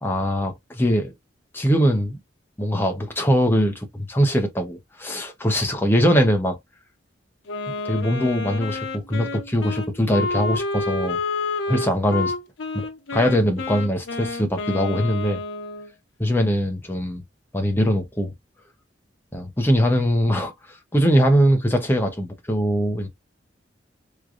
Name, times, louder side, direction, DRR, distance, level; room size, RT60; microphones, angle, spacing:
voice 1, 0.0-1.1 1.5-2.2 2.6-6.6 7.7-11.2 11.7-12.3 12.7-12.9 13.1-15.4 16.2-17.2 17.5-18.3 19.3-23.1, equal, 10° left, 0.8 m, -22 dB
Wind instrument woodwind instrument, 7.5-15.9, left 3 dB, 85° left, 0.7 m, -29 dB
3.7 x 3.2 x 2.4 m
head